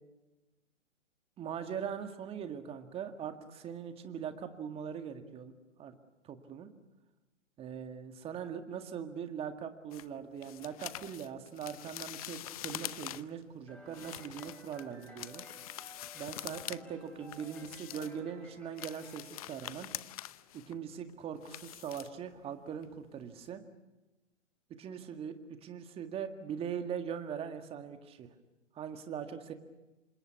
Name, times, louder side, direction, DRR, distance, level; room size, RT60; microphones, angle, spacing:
voice 1, 1.4-5.5 5.8-6.0 6.2-6.7 7.6-15.4 16.1-19.9 20.5-23.6 24.7-28.3 28.8-29.5, right 8 dB, 15° right, 7 dB, 1.9 m, -41 dB
sound 1, 9.9-13.4 13.9-16.8 17.1-18.2 18.6-22.5 22.8-23.1 23.4-23.5, left 15 dB, 30° left, 0.7 m, -45 dB
sound 2, 13.7-20.3, equal, 5° left, 4.8 m, -56 dB
28.0 x 25.5 x 5.9 m, 1.1 s
figure-of-eight pair, 130°, 36 cm